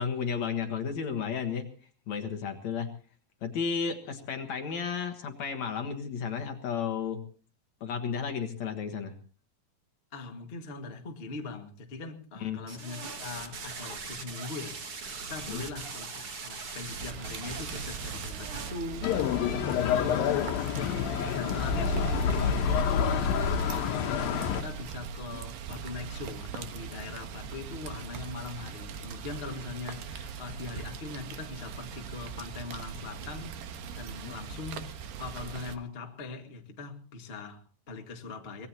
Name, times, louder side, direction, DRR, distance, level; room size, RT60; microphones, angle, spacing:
voice 1, 0.0-1.7 2.1-2.9 3.4-7.2 7.8-9.1 12.4-12.6 15.5-15.6 19.8-20.0 34.2-34.3, left 6 dB, 60° left, 2.5 m, -33 dB
voice 2, 10.1-14.8 15.2-38.7, left 4 dB, 25° left, 1.5 m, -41 dB
sound 1, 12.7-18.7, right 4 dB, 45° right, 2.8 m, -40 dB
Rain, 16.9-35.8, right 6 dB, 80° right, 3.1 m, -41 dB
sound 2, 19.0-24.6, left 7 dB, 90° left, 2.8 m, -27 dB
24.5 x 19.5 x 2.9 m
omnidirectional pair, 4.0 m